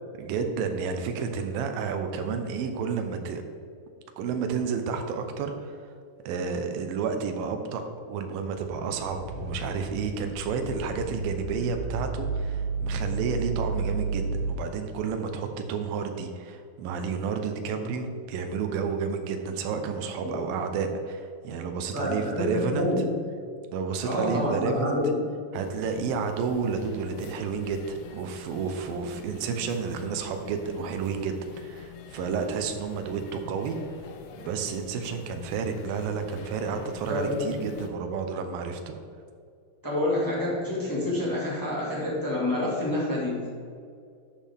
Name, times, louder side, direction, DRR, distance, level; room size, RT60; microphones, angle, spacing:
voice 1, 0.2-3.4 4.2-5.8 6.3-7.8 8.1-22.9 23.7-25.0 25.5-33.8 34.4-39.0, right 5 dB, 75° right, 6 dB, 2.4 m, -31 dB
sound 1, 8.6-14.6, right 3 dB, 90° right, 3.7 m, -32 dB
voice 2, 21.9-23.2 24.0-25.2 36.7-36.8 37.1-37.6 39.8-43.5, left 1 dB, 10° left, -6 dB, 0.9 m, -28 dB
sound 2, 25.5-37.9, left 7 dB, 80° left, 2.7 m, -46 dB
11.5 x 7.5 x 3.6 m, 2.4 s
omnidirectional pair, 4.7 m